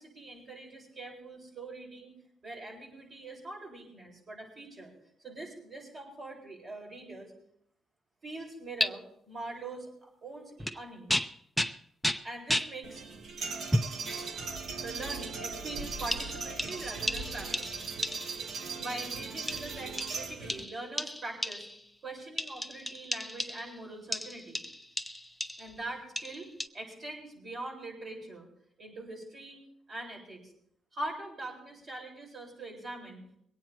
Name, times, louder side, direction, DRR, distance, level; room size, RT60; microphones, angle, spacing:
voice 1, 0.0-2.1 2.4-4.9 5.2-7.3 8.2-11.2 12.2-13.0 14.8-17.7 18.8-21.7 22.0-24.6 25.6-28.5 28.8-30.5 30.9-33.4, right 2 dB, 40° right, -1 dB, 7.6 m, -43 dB
sound 1, 8.8-8.9 10.6-10.8 11.1-12.8 13.7-14.0 14.8-14.9 16.1-18.5 19.5-21.9 22.4-23.8 24.1-25.7 26.2-26.7, equal, ahead, 0.8 m, -34 dB
sound 2, 12.8-20.6, right 4 dB, 60° right, 1.6 m, -38 dB
22.5 x 9.3 x 4.6 m, 0.70 s
cardioid pair, 90°, 0 cm